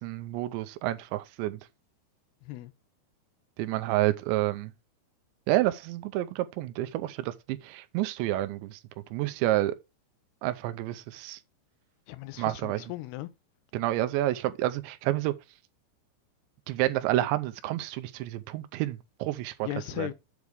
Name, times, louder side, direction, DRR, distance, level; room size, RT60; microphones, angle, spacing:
voice 1, 0.0-1.6 3.6-4.7 5.5-8.8 9.1-9.8 10.4-11.4 12.4-12.8 13.7-15.3 16.7-19.5 20.0-20.1, right 15 dB, 85° right, 2.9 m, -29 dB
voice 2, 2.4-2.7 12.1-13.3 19.6-20.1, left 16 dB, 75° left, 2.5 m, -37 dB
8.3 x 3.4 x 6.2 m
omnidirectional pair, 5.3 m